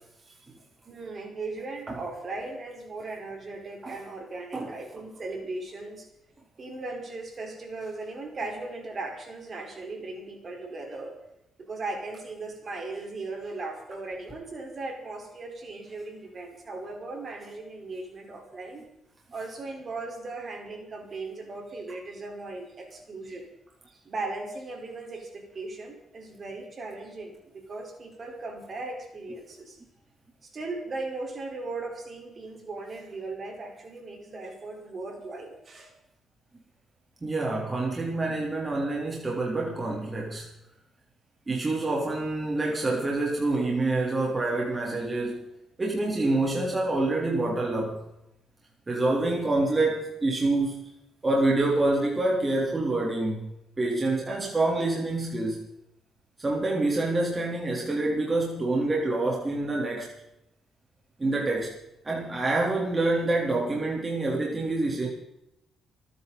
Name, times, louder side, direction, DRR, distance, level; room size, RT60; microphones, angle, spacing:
voice 1, 0.9-6.1 6.6-11.2 11.7-18.8 19.3-23.5 23.9-29.8 30.4-36.0, right 3 dB, 40° right, 2 dB, 4.6 m, -38 dB
voice 2, 37.2-40.5 41.5-45.4 45.8-48.0 48.9-50.8 51.2-53.5 53.8-55.6 56.4-60.1 61.2-61.7 62.0-65.1, right 2 dB, 25° right, -2 dB, 3.7 m, -26 dB
28.0 x 10.5 x 4.2 m, 0.85 s
cardioid pair, 90°, 0 cm